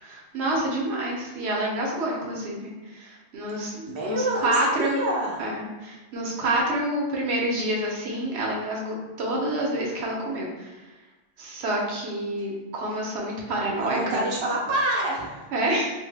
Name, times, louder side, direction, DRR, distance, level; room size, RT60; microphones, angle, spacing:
voice 1, 0.0-5.0 5.4-10.9 11.4-14.3 15.5-15.9, right 1 dB, 75° right, -3 dB, 1.0 m, -28 dB
voice 2, 3.9-5.4 13.8-15.5, right 1 dB, 35° right, -3 dB, 0.5 m, -27 dB
2.8 x 2.5 x 3.3 m, 1.1 s
omnidirectional pair, 1.2 m